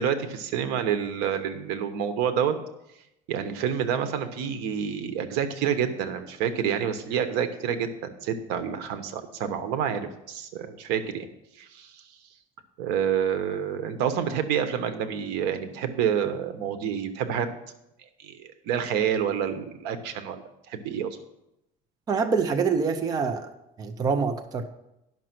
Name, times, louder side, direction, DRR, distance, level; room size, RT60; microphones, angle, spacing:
voice 1, 0.0-2.6 3.3-11.3 11.6-12.0 12.8-17.5 18.2-20.4 20.7-21.2, right 8 dB, 75° right, 9 dB, 1.1 m, -28 dB
voice 2, 22.1-23.5 23.8-24.6, right 5 dB, 20° right, 5 dB, 0.5 m, -25 dB
11.0 x 6.1 x 6.0 m, 0.87 s
cardioid pair, 170°, 17 cm